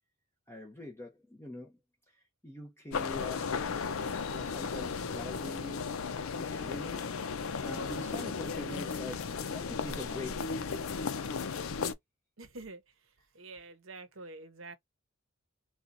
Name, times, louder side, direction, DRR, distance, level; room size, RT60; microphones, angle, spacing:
voice 1, 0.5-1.8 2.1-3.6 4.3-6.0 6.4-10.6, left 1 dB, 10° left, 0.7 m, -44 dB
sound 1, 2.9-11.9, left 5 dB, 85° left, 0.6 m, -35 dB
voice 2, 12.4-12.8 13.3-14.8, right 3 dB, 70° right, 0.9 m, -46 dB
4.3 x 2.3 x 2.6 m
head